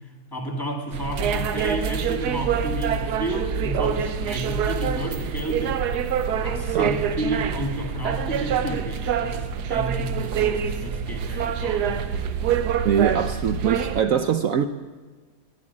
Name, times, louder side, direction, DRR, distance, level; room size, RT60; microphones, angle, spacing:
voice 1, 0.3-5.8 6.4-12.3, right 1 dB, 15° left, 1 dB, 1.9 m, -31 dB
sound 1, 0.9-14.0, right 7 dB, 90° right, 1.4 m, -26 dB
voice 2, 12.8-14.7, right 8 dB, 65° right, 9 dB, 1.0 m, -22 dB
11.5 x 11.0 x 9.7 m, 1.4 s
omnidirectional pair, 1.7 m